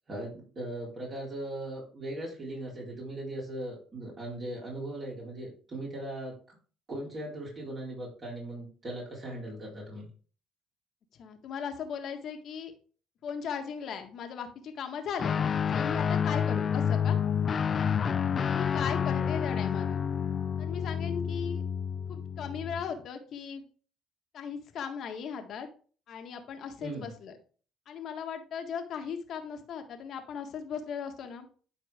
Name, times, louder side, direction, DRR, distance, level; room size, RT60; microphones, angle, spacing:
voice 1, 0.1-6.6 6.9-10.1 26.8-27.1, right 1 dB, 40° right, -5 dB, 4.2 m, -39 dB
voice 2, 11.2-12.7 13.2-15.4 15.7-17.2 18.5-20.0 20.6-21.6 22.1-23.6 24.3-25.7 26.1-27.3 27.9-31.5, left 7 dB, 60° left, 5 dB, 1.6 m, -37 dB
Guitar, 15.2-22.9, left 7 dB, 45° left, 0.7 m, -29 dB
11.5 x 4.4 x 3.6 m, 0.41 s
supercardioid pair, 70°, 0 cm